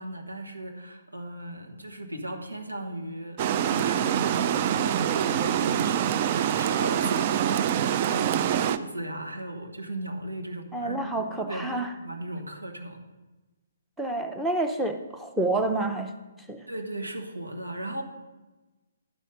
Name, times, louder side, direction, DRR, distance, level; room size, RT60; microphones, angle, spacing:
voice 1, 0.0-13.0 16.7-18.0, right 1 dB, 80° right, 2 dB, 1.6 m, -36 dB
Water, 3.4-8.8, right 10 dB, 35° right, 0.4 m, -25 dB
voice 2, 10.7-11.9 14.0-16.1 16.5-16.6, right 2 dB, ahead, 5 dB, 0.8 m, -28 dB
11.0 x 5.5 x 6.5 m, 1.1 s
figure-of-eight pair, 130°, 0 cm